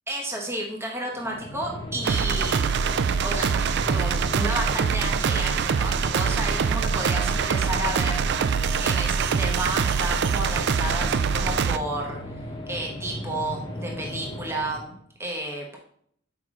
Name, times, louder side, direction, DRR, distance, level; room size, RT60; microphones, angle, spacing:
voice 1, 0.1-3.5 3.8-8.2 8.8-12.2 12.7-15.8, right 1 dB, 15° right, -1 dB, 1.0 m, -32 dB
sound 1, 1.1-15.0, left 1 dB, 25° left, 0.9 m, -36 dB
sound 2, 2.0-11.8, right 6 dB, 55° right, 0.3 m, -24 dB
7.1 x 4.9 x 3.6 m, 0.65 s
head